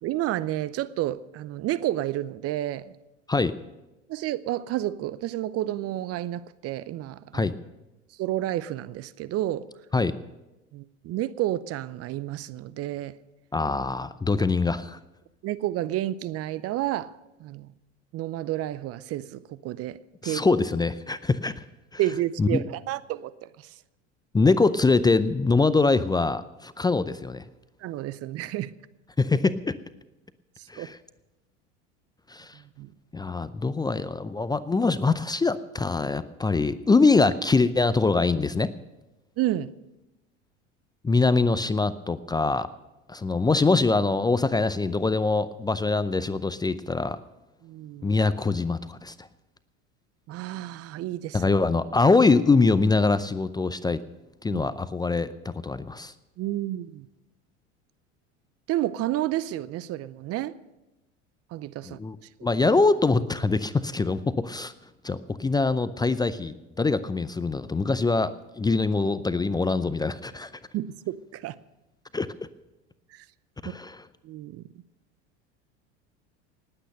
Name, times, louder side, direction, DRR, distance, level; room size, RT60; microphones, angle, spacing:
voice 1, 0.0-2.9 4.1-7.5 8.2-9.7 10.7-13.1 15.4-17.1 17.4-17.7 18.1-20.0 20.2-20.4 22.0-23.3 27.8-28.7 30.8-30.9 32.8-32.9 39.4-39.7 47.6-48.1 50.3-51.4 54.5-54.6 56.4-57.1 58.7-60.5 61.5-62.0 70.7-71.5 73.1-73.2 74.2-74.6, right 14 dB, 40° right, 17 dB, 0.6 m, -30 dB
voice 2, 13.5-15.0 20.2-21.6 21.9-22.0 22.4-22.6 24.3-27.4 29.2-29.7 30.7-31.0 32.3-32.6 33.1-38.7 41.0-42.7 43.1-47.2 48.0-49.3 51.3-54.0 54.4-56.1 61.8-62.2 62.4-64.7 65.0-70.5 72.1-72.3 73.6-74.1, left 3 dB, 10° left, 15 dB, 0.5 m, -23 dB
19.0 x 8.8 x 6.6 m, 0.98 s
hypercardioid pair, 80°, 36 cm